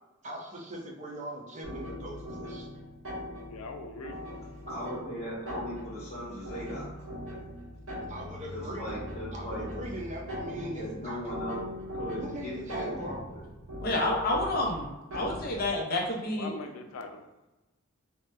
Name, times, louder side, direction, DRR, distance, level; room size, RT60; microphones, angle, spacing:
voice 1, 0.2-2.7 8.1-8.9 9.3-11.2 12.2-13.2, right 1 dB, 35° right, -2 dB, 0.6 m, -40 dB
sound 1, 1.6-15.8, equal, 65° right, 1.1 m, -40 dB
voice 2, 3.5-4.3 16.3-17.2, left 3 dB, 80° left, 5 dB, 0.4 m, -41 dB
voice 3, 4.7-6.9 8.5-9.6 10.8-11.6 12.0-13.4, equal, 30° left, -7 dB, 1.1 m, -38 dB
voice 4, 13.8-16.5, left 2 dB, 45° left, -2 dB, 0.7 m, -29 dB
3.1 x 2.7 x 2.3 m, 1.0 s
head